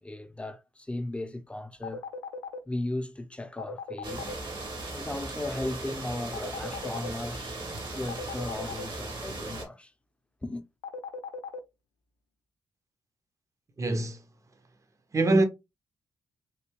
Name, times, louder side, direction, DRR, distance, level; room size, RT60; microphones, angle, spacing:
voice 1, 0.0-2.0 2.7-4.3 4.9-7.6 7.9-9.9 10.4-10.6, left 1 dB, 10° left, 0.7 m, -36 dB
sound 1, 1.8-2.6 3.6-4.3 6.3-7.1 8.1-8.8 10.8-11.6, left 5 dB, 85° left, 0.4 m, -37 dB
sound 2, 4.0-9.6, right 2 dB, 60° right, 1.5 m, -38 dB
voice 2, 13.8-14.2 15.1-15.5, right 2 dB, 35° right, 0.8 m, -23 dB
3.3 x 2.7 x 3.0 m
hypercardioid pair, 45°, 9 cm